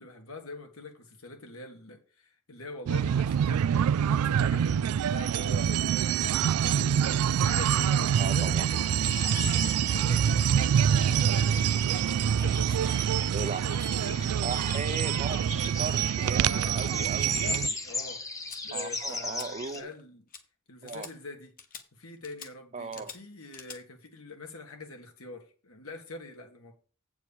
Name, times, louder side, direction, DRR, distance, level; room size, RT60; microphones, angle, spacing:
voice 1, 0.0-11.8 12.3-13.1 14.0-14.3 16.2-18.2 18.6-20.2 20.7-21.5 21.9-26.7, left 2 dB, 70° left, 1.9 m, -45 dB
sound 1, 2.9-17.7, right 8 dB, 90° right, 0.3 m, -26 dB
voice 2, 8.2-8.7 13.3-13.6 14.4-17.8 18.7-19.9 20.8-21.1 22.7-23.1, right 4 dB, 30° right, 0.6 m, -37 dB
sound 2, 9.0-19.8, left 2 dB, 15° left, 1.1 m, -39 dB
sound 3, 18.5-18.6 19.1-19.5 19.7-20.0 20.3-20.4 20.9-21.1 21.6-21.8 22.2-22.5 22.9-23.2 23.5-23.8, left 7 dB, 40° left, 1.2 m, -45 dB
8.2 x 4.7 x 7.1 m
head